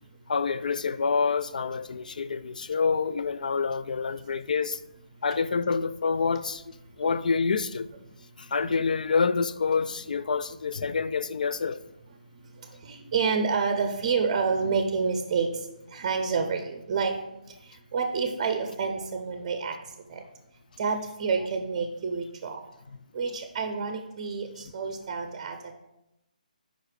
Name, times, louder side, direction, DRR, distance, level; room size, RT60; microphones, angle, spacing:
voice 1, 0.3-4.8 5.2-7.9 8.4-11.8, left 5 dB, 70° left, 0.3 m, -27 dB
voice 2, 12.8-15.5 15.9-17.1 17.9-19.8 20.1-20.2 20.8-22.6 23.1-25.6, right 5 dB, 40° right, 0.6 m, -28 dB
5.1 x 4.8 x 4.7 m
figure-of-eight pair, 145°, 5 cm